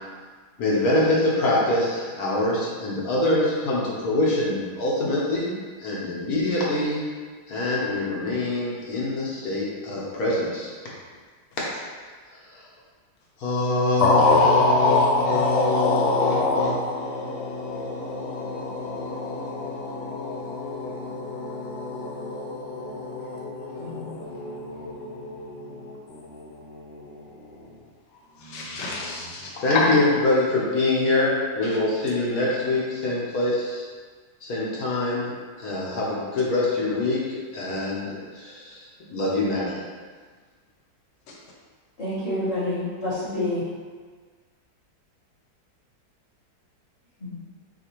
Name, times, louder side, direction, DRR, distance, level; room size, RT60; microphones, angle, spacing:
voice 1, 0.6-5.5 5.8-7.0 7.5-10.7 11.6-11.7 12.5-12.6 13.4-25.1 29.5-33.8 34.4-35.3 35.6-39.8, left 2 dB, 60° left, 1.4 m, -26 dB
voice 2, 14.0-27.2 28.4-29.9 31.7-31.8, left 3 dB, 90° left, 1.3 m, -26 dB
voice 3, 42.0-43.6 47.2-47.4, left 1 dB, 30° left, 0.9 m, -28 dB
6.8 x 2.5 x 3.0 m
omnidirectional pair, 1.8 m